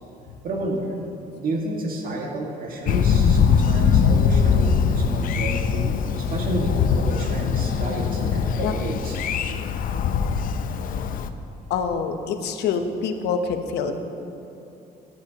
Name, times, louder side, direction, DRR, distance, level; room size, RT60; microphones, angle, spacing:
voice 1, 0.4-1.0 1.4-9.2, right 2 dB, 60° right, 0 dB, 1.9 m, -30 dB
Thunder, 2.9-11.3, left 6 dB, 55° left, 0.6 m, -21 dB
voice 2, 11.7-13.9, left 6 dB, 75° left, 6 dB, 0.9 m, -26 dB
15.0 x 10.5 x 3.0 m, 2.8 s
cardioid pair, 110°, 17 cm